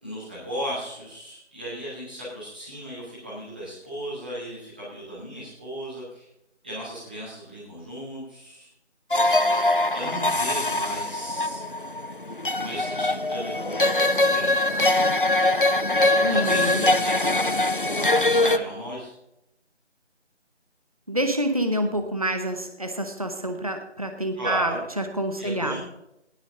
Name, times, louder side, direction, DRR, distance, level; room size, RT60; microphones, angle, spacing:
voice 1, 0.0-6.2 6.6-8.7 9.9-11.6 12.6-14.9 16.2-17.5 18.3-19.1 24.3-24.8 25.4-25.8, equal, 10° right, -10 dB, 2.8 m, -35 dB
sound 1, 9.1-18.6, left 2 dB, 50° left, 0.5 m, -22 dB
voice 2, 16.2-16.9 21.1-25.8, right 1 dB, 30° right, 6 dB, 1.0 m, -27 dB
18.0 x 7.1 x 3.8 m, 0.81 s
figure-of-eight pair, 180°, 36 cm